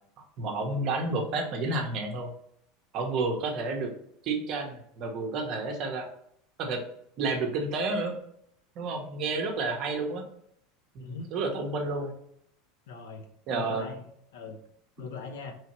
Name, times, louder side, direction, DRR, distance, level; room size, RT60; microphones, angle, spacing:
voice 1, 0.4-2.3 2.9-3.9 4.2-6.1 6.6-6.8 7.2-8.1 8.8-10.3 10.9-12.1 13.5-13.9, right 3 dB, 35° right, 3 dB, 0.8 m, -30 dB
voice 2, 11.0-11.3 12.9-13.3 13.5-14.0 14.3-14.6 15.0-15.5, left 5 dB, 85° left, 5 dB, 0.8 m, -40 dB
4.1 x 3.2 x 3.0 m, 0.70 s
supercardioid pair, 170°, 0 cm